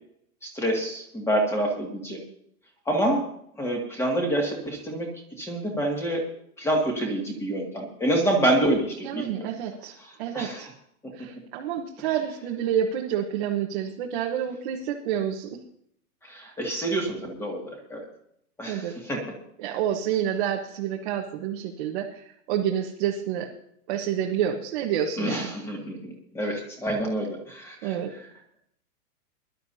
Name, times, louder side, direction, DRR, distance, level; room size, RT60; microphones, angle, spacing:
voice 1, 0.4-2.2 2.9-3.3 3.6-5.1 5.4-6.2 6.6-9.5 10.3-10.7 16.2-18.0 18.6-19.2 25.2-28.0, right 1 dB, 5° left, 1 dB, 2.1 m, -27 dB
voice 2, 9.0-10.7 11.1-15.6 18.7-18.9 19.6-23.5 23.9-25.5 27.8-28.1, right 9 dB, 35° right, 0 dB, 1.2 m, -28 dB
23.0 x 12.0 x 2.8 m, 0.72 s
hypercardioid pair, 165°, 46 cm